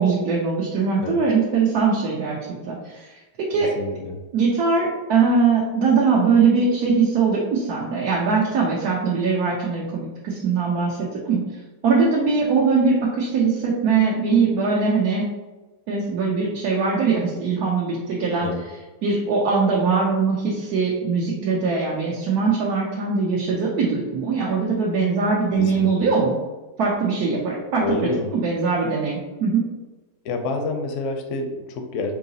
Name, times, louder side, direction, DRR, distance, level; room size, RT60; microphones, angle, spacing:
voice 1, 0.0-2.4 2.7-3.1 3.5-3.7 4.3-11.0 11.2-11.4 11.8-15.3 15.9-18.5 19.0-26.4 26.8-27.8 28.4-29.6, right 4 dB, 75° right, -4 dB, 1.2 m, -21 dB
voice 2, 3.5-4.2 18.4-18.6 25.5-26.1 27.8-28.3 30.2-32.1, left 3 dB, 65° left, 5 dB, 0.8 m, -28 dB
4.7 x 2.8 x 2.7 m, 1.2 s
omnidirectional pair, 1.6 m